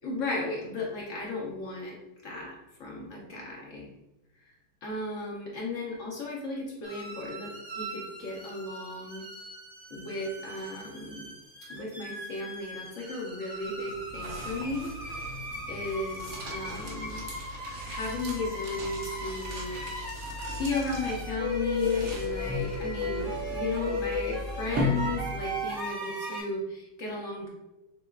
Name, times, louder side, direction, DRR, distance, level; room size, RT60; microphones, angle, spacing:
voice 1, 0.0-2.0 2.2-3.9 4.8-9.3 9.9-11.3 11.7-14.9 15.7-17.2 17.9-19.8 20.6-27.5, left 3 dB, 85° left, -2 dB, 0.6 m, -35 dB
sound 1, 6.8-26.4, left 1 dB, 80° right, 0.3 m, -37 dB
sound 2, 13.6-25.7, left 1 dB, 55° right, 1.1 m, -37 dB
6.5 x 2.2 x 2.4 m, 0.98 s
omnidirectional pair, 2.2 m